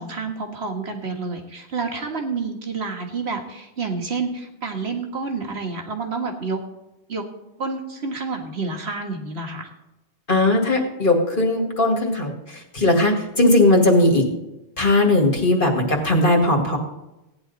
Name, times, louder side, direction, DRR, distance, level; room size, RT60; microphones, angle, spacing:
voice 1, 0.0-6.6 7.1-7.2 7.6-9.7, right 4 dB, 65° right, 3 dB, 1.9 m, -29 dB
voice 2, 10.3-14.3 14.8-16.8, left 2 dB, 50° left, 1 dB, 2.1 m, -18 dB
16.5 x 9.8 x 4.1 m, 0.95 s
omnidirectional pair, 1.2 m